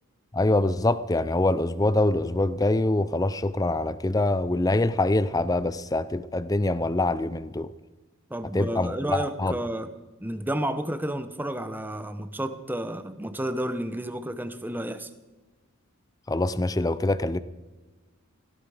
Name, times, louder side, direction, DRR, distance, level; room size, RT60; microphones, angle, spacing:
voice 1, 0.3-7.7 8.5-9.6 16.3-17.4, left 2 dB, 15° left, 15 dB, 0.4 m, -24 dB
voice 2, 8.3-9.9 10.2-15.1, right 1 dB, 10° right, 10 dB, 0.8 m, -31 dB
17.5 x 16.0 x 4.9 m, 1.2 s
head